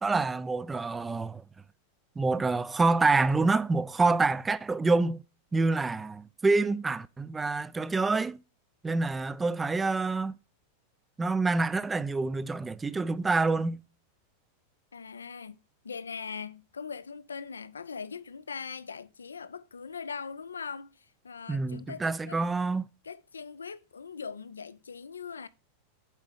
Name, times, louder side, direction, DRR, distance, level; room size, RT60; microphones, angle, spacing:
voice 1, 0.0-1.4 2.2-5.2 5.5-8.4 8.8-10.3 11.2-13.8 21.5-22.9, right 3 dB, 15° right, 0.3 m, -27 dB
voice 2, 14.9-15.6 15.8-22.5 23.0-25.5, left 5 dB, 75° left, 0.4 m, -41 dB
7.5 x 4.5 x 4.9 m
figure-of-eight pair, 90°, 0 cm